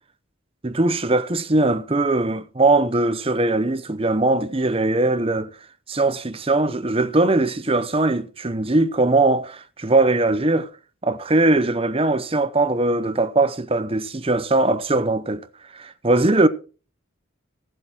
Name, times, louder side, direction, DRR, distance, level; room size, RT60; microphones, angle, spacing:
voice 1, 0.6-5.5 5.9-10.7 11.0-15.5 15.7-16.5, right 2 dB, 25° right, 0.8 m, -20 dB
15.5 x 7.7 x 4.3 m
head